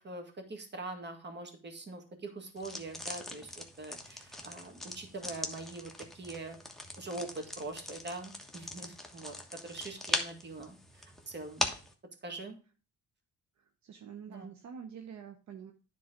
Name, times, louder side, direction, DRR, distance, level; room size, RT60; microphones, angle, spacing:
voice 1, 0.0-6.6 7.0-9.4 9.6-11.7 12.2-12.6 14.3-14.5, right 2 dB, 35° right, 5 dB, 2.0 m, -43 dB
sound 1, 2.6-11.9, left 1 dB, ahead, 1.3 m, -40 dB
voice 2, 13.6-15.7, right 7 dB, 65° right, 5 dB, 0.9 m, -47 dB
9.7 x 3.9 x 5.1 m, 0.34 s
cardioid pair, 90°, 30 cm